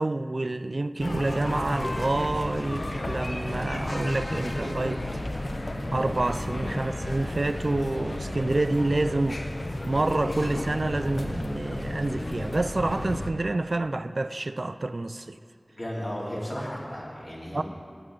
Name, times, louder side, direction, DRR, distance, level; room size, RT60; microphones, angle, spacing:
voice 1, 0.0-5.0 5.9-9.4 9.8-15.4 17.5-17.6, right 2 dB, 75° right, 12 dB, 0.3 m, -28 dB
sound 1, 1.0-13.3, left 1 dB, 80° left, 0.8 m, -32 dB
voice 2, 15.7-17.6, equal, 50° left, -6 dB, 2.7 m, -35 dB
13.0 x 8.7 x 3.9 m, 2.2 s
wide cardioid pair, 45°, 0 cm